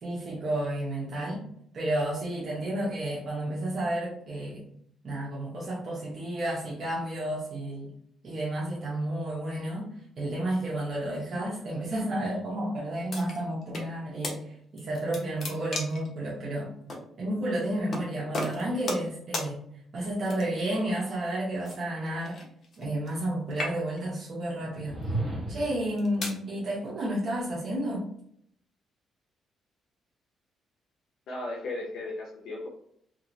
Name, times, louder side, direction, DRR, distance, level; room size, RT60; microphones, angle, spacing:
voice 1, 0.0-1.4 1.7-4.6 5.0-7.9 8.2-16.7 17.2-19.6 19.9-22.4 22.8-25.0 25.5-28.0, right 1 dB, 55° right, -5 dB, 0.9 m, -31 dB
sound 1, 13.1-13.9 14.2-14.4 14.8-16.1 16.9-17.0 17.9-18.1 18.3-19.1 19.3-19.5 20.2-20.7 21.6-23.2 23.5-24.1 24.8-25.0 25.7-26.4, left 2 dB, 50° left, 1.0 m, -35 dB
sound 2, 24.7-25.9, right 2 dB, 15° right, 1.1 m, -33 dB
voice 2, 31.3-32.7, left 2 dB, 75° left, -1 dB, 0.6 m, -35 dB
3.0 x 2.8 x 2.6 m, 0.69 s
cardioid pair, 90°, 0 cm